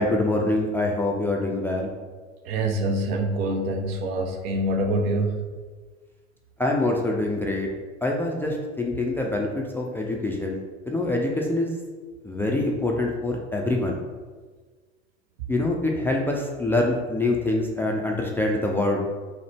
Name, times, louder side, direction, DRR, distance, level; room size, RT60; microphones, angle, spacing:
voice 1, 0.0-1.9 6.6-7.7 8.0-11.8 12.2-14.0 15.5-19.1, left 2 dB, 5° left, 0 dB, 0.3 m, -25 dB
voice 2, 2.2-5.6, right 1 dB, 60° right, 4 dB, 0.6 m, -26 dB
5.8 x 2.1 x 3.3 m, 1.4 s
figure-of-eight pair, 70°, 34 cm